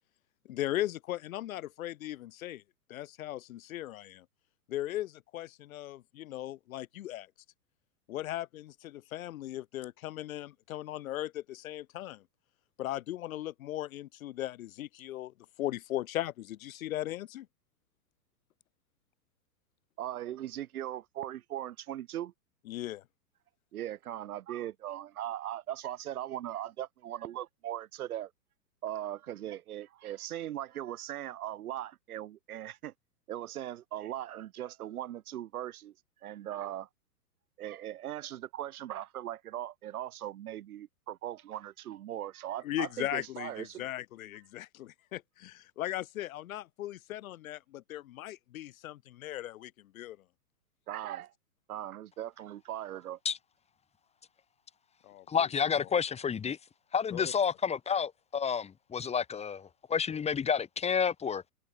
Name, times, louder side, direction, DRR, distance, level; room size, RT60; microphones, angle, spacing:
voice 1, 0.5-2.6 2.9-4.3 4.7-7.3 8.1-12.2 12.8-17.5 22.7-23.0 42.6-50.2 55.0-55.5 57.1-57.2, left 14 dB, 60° left, 2.3 m, -38 dB
voice 2, 20.0-22.3 23.7-28.3 28.8-32.9 33.3-35.9 36.2-36.9 37.6-43.8 50.9-51.3 51.7-53.2, right 12 dB, 65° right, 2.4 m, -39 dB
voice 3, 55.3-56.6 56.9-61.5, left 7 dB, 15° left, 1.7 m, -30 dB
hypercardioid pair, 125°, 47 cm